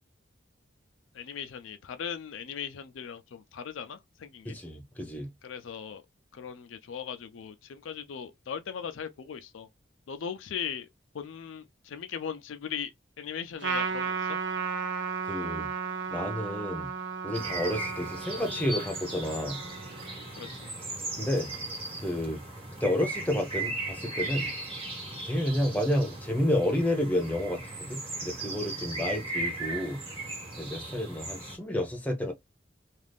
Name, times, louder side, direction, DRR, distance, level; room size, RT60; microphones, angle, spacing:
voice 1, 1.1-4.6 5.4-6.0 6.3-9.7 10.1-10.9 11.1-12.9 13.2-14.4 20.4-20.7, left 7 dB, 80° left, 0.4 m, -39 dB
voice 2, 4.4-5.3 15.3-15.7 16.1-16.9 17.2-19.6 21.2-21.5 22.0-22.4 22.8-24.5 25.2-27.6 27.9-30.0 30.6-32.3, left 1 dB, 10° left, 0.6 m, -30 dB
Trumpet, 13.6-20.3, right 5 dB, 65° right, 0.6 m, -34 dB
sound 1, 17.3-31.6, right 2 dB, 30° right, 1.1 m, -37 dB
2.5 x 2.3 x 3.4 m
head